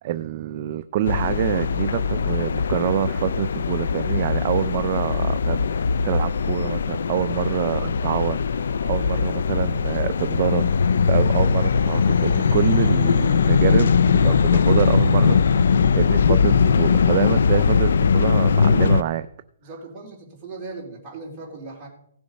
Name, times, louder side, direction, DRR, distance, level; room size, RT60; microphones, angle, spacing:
voice 1, 0.0-10.7 11.1-15.7 16.0-19.3, right 12 dB, 35° right, 12 dB, 0.4 m, -26 dB
sound 1, 1.1-19.0, left 5 dB, 75° left, 0.4 m, -20 dB
voice 2, 19.6-21.9, right 3 dB, 15° right, -4 dB, 3.6 m, -38 dB
16.5 x 6.9 x 5.2 m, 0.68 s
hypercardioid pair, 170°, 0 cm